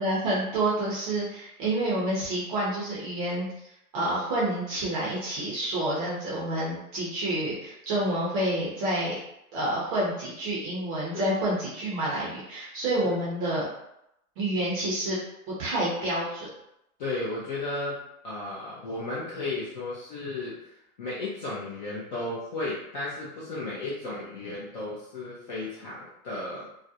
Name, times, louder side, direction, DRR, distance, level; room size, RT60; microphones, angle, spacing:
voice 1, 0.0-9.1 9.5-13.7 14.4-15.2 15.6-16.5, right 1 dB, 25° right, -6 dB, 0.5 m, -28 dB
voice 2, 17.0-18.0 18.2-26.7, left 2 dB, 35° left, -7 dB, 0.4 m, -34 dB
2.4 x 2.0 x 2.7 m, 0.81 s
hypercardioid pair, 140°, 44 cm